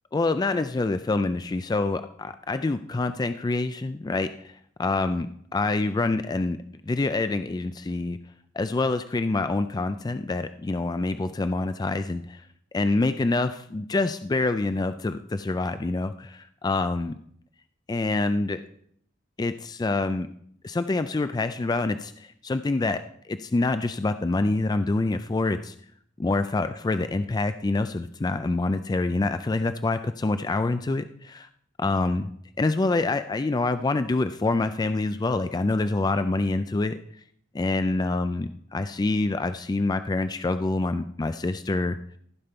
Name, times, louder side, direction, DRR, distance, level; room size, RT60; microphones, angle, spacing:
voice 1, 0.1-6.6 6.8-8.2 8.5-12.4 12.7-17.1 17.9-18.6 19.4-20.3 20.6-25.7 26.2-31.5 31.8-32.3 32.6-37.0 37.5-42.0, left 2 dB, 20° left, 10 dB, 0.3 m, -26 dB
15.0 x 5.2 x 4.4 m, 0.65 s
head